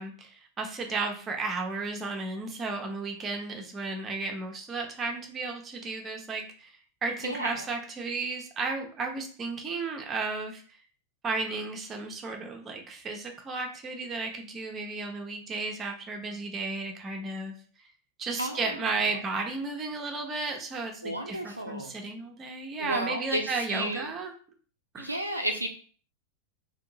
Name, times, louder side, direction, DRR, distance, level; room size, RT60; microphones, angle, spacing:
voice 1, 0.0-6.7 7.0-10.8 11.2-17.5 18.2-24.3 24.9-25.1, right 3 dB, 20° right, 3 dB, 0.6 m, -34 dB
voice 2, 7.2-7.7 18.4-19.2 21.0-21.9 22.8-24.1 25.0-25.7, right 1 dB, 85° right, 3 dB, 0.4 m, -33 dB
2.8 x 2.7 x 2.6 m, 0.43 s
figure-of-eight pair, 90°, 0 cm